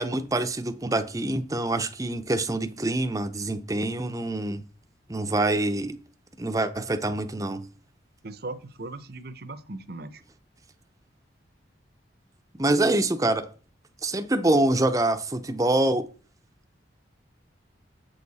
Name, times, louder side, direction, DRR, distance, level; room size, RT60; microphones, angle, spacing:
voice 1, 0.0-4.6 5.1-6.0 6.4-7.7 12.6-13.5 14.0-16.1, right 2 dB, 20° right, 0.6 m, -25 dB
voice 2, 8.2-10.2, right 2 dB, 55° right, 0.8 m, -38 dB
8.0 x 6.7 x 4.1 m
head